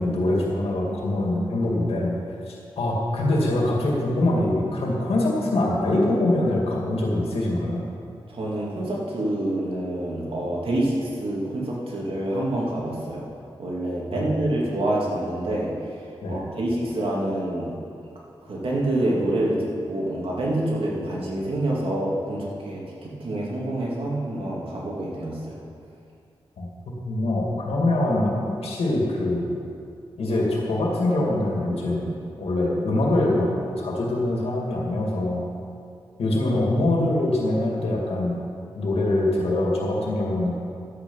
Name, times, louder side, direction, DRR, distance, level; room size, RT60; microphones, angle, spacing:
voice 1, 0.0-2.1 2.5-7.8 14.1-14.3 16.2-16.4 26.6-28.3 28.6-29.5 30.2-33.5 33.8-35.4 36.2-38.4 38.7-40.5, left 1 dB, 90° left, -2 dB, 2.3 m, -24 dB
voice 2, 8.3-13.3 13.6-15.9 16.3-17.8 18.4-25.6, right 1 dB, 70° right, -4 dB, 2.8 m, -27 dB
12.5 x 8.6 x 5.6 m, 2.4 s
cardioid pair, 60°, 10 cm